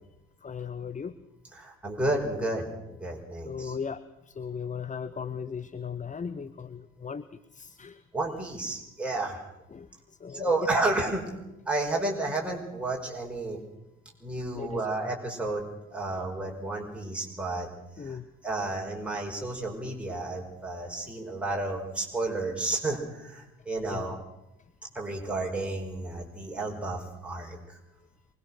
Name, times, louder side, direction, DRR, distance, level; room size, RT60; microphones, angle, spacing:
voice 1, 0.4-1.2 3.4-8.0 9.7-9.9 10.2-10.5 14.5-14.9 18.0-18.3 23.9-24.2, left 6 dB, 20° left, 13 dB, 1.0 m, -37 dB
voice 2, 1.5-3.8 8.1-9.4 10.3-11.3 11.7-13.6 14.2-15.6 15.9-17.7 18.0-18.2 18.4-24.2 25.0-27.8, right 2 dB, 5° right, -1 dB, 5.3 m, -31 dB
24.0 x 21.5 x 6.4 m, 0.93 s
figure-of-eight pair, 55°, 40 cm